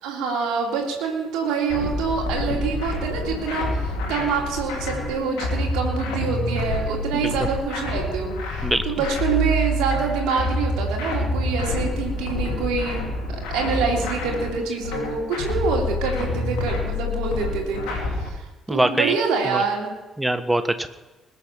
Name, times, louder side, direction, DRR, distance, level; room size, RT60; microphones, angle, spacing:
voice 1, 0.0-13.0 13.5-19.9, right 5 dB, 70° right, 0 dB, 2.7 m, -26 dB
sound 1, 1.7-18.3, left 1 dB, 75° left, 2.9 m, -27 dB
voice 2, 18.7-19.1 19.5-19.6 20.2-20.9, right 1 dB, 10° right, 10 dB, 1.4 m, -22 dB
20.5 x 7.0 x 5.8 m, 1.1 s
hypercardioid pair, 45°, 0 cm